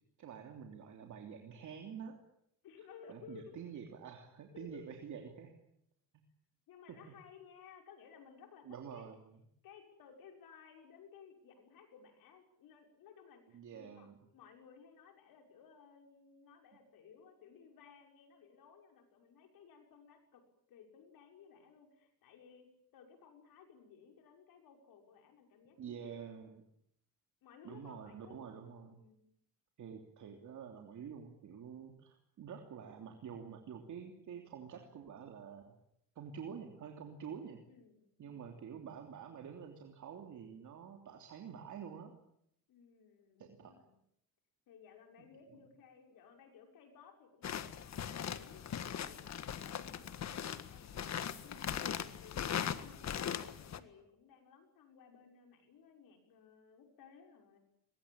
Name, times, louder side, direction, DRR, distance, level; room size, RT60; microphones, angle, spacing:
voice 1, 0.2-2.2 3.1-5.5 6.1-6.2 6.9-7.1 8.6-9.3 13.5-14.2 25.8-26.6 27.6-29.0 29.8-35.7 36.1-37.6 38.2-42.1 43.4-43.7 45.2-45.6, right 7 dB, 55° right, 3 dB, 3.1 m, -48 dB
voice 2, 2.6-3.5 4.5-4.8 5.2-5.3 6.7-9.1 9.6-14.1 14.3-20.4 20.7-26.3 27.4-28.6 28.9-29.2 37.7-38.5 42.7-44.0 44.7-57.6, left 6 dB, 75° left, 3 dB, 6.3 m, -58 dB
sound 1, 47.4-53.8, left 8 dB, 50° left, 1.7 m, -40 dB
23.0 x 22.0 x 8.9 m, 0.75 s
cardioid pair, 120°, 35 cm